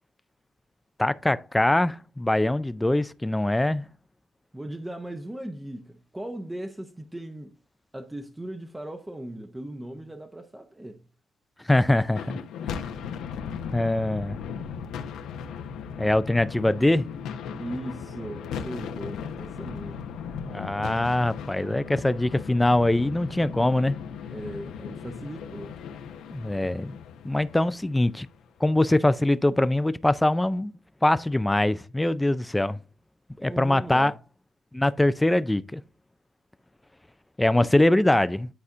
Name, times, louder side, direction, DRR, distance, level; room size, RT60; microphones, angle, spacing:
voice 1, 1.0-3.9 11.7-12.4 13.7-14.4 16.0-17.1 20.3-24.0 26.3-27.0 27.2-28.3 28.6-30.7 31.0-32.8 33.4-34.1 34.7-35.8 37.4-38.5, left 1 dB, 10° left, 0.4 m, -23 dB
voice 2, 4.5-7.5 7.9-11.0 17.5-20.1 24.3-25.8 33.4-34.2, right 1 dB, 10° right, 0.8 m, -38 dB
sound 1, 12.1-28.5, left 7 dB, 85° left, 0.9 m, -37 dB
11.0 x 4.1 x 2.5 m
cardioid pair, 90°, 0 cm